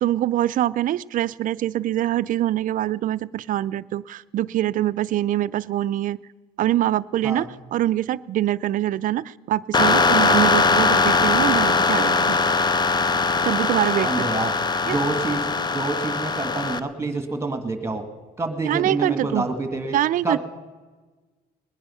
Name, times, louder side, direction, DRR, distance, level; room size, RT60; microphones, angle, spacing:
voice 1, 0.0-6.2 6.6-12.4 13.4-14.5 14.9-15.0 18.6-19.5 19.9-20.4, right 13 dB, 55° right, 16 dB, 0.4 m, -24 dB
sound 1, 9.7-16.8, left 4 dB, 25° left, 0.6 m, -20 dB
voice 2, 14.0-14.5 14.8-18.0 18.4-20.0 20.2-20.4, right 2 dB, 15° right, 8 dB, 1.7 m, -27 dB
20.0 x 10.0 x 5.6 m, 1.3 s
cardioid pair, 110°, 17 cm